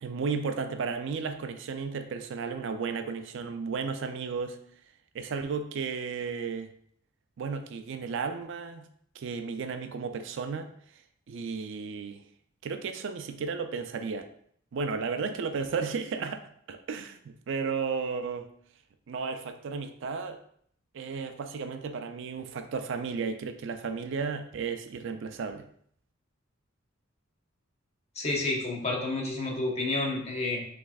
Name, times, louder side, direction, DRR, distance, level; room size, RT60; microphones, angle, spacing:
voice 1, 0.0-4.6 5.1-6.7 7.4-8.8 9.1-10.7 11.3-12.2 12.6-14.3 14.7-18.5 19.1-20.4 20.9-25.6, right 5 dB, 65° right, 7 dB, 0.4 m, -34 dB
voice 2, 28.2-30.7, left 2 dB, 35° left, -1 dB, 0.9 m, -30 dB
5.9 x 3.2 x 2.3 m, 0.63 s
head